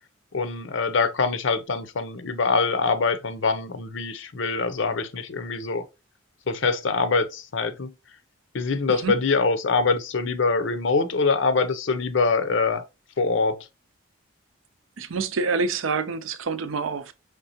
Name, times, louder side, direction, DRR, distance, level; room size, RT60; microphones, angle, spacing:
voice 1, 0.3-5.9 6.5-7.9 8.5-12.8 13.2-13.7, left 4 dB, 65° left, 0.6 m, -24 dB
voice 2, 15.0-17.1, right 4 dB, 75° right, 0.5 m, -27 dB
5.2 x 3.3 x 2.8 m
head